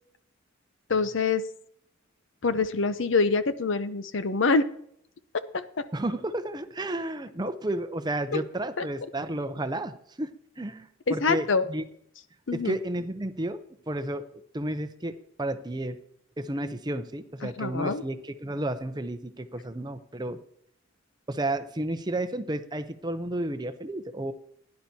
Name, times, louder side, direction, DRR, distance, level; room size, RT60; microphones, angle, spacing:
voice 1, 0.9-1.4 2.4-4.7 5.5-5.9 8.3-8.4 8.8-8.9 11.1-11.7 12.5-12.8 17.4-18.0, left 4 dB, 65° left, 12 dB, 0.7 m, -25 dB
voice 2, 5.9-10.3 10.6-11.8 12.5-13.6 13.9-14.2 14.5-15.1 15.4-16.0 16.4-20.4 21.3-24.3, right 1 dB, 20° right, 10 dB, 0.6 m, -32 dB
16.0 x 10.5 x 2.8 m, 0.68 s
head